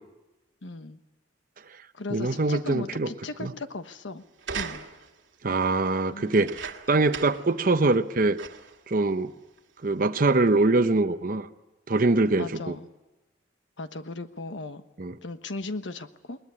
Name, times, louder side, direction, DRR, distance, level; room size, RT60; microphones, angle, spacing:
voice 1, 0.6-1.0 1.9-4.2 4.5-4.9 6.1-6.4 12.4-12.9 13.8-14.8 15.2-16.4, left 2 dB, 80° left, 9 dB, 1.3 m, -37 dB
voice 2, 2.1-3.1 3.4-3.5 5.4-8.4 8.9-9.3 9.8-11.5 11.9-12.8 15.0-15.1, right 2 dB, 50° right, 9 dB, 0.8 m, -23 dB
sound 1, 4.4-5.2 6.3-7.5 7.9-8.0 8.4-8.8 9.6-9.7, right 6 dB, 85° right, 2.1 m, -37 dB
21.0 x 20.5 x 9.8 m, 1.0 s
head